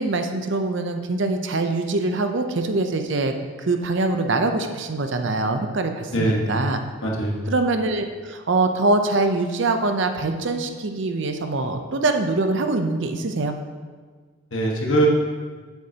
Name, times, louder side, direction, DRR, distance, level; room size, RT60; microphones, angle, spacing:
voice 1, 0.0-6.8 7.5-13.5, right 2 dB, 60° right, 6 dB, 0.6 m, -23 dB
voice 2, 6.1-6.5 7.0-7.5 14.5-15.1, right 1 dB, 65° left, -2 dB, 1.4 m, -22 dB
8.1 x 7.9 x 2.8 m, 1.5 s
head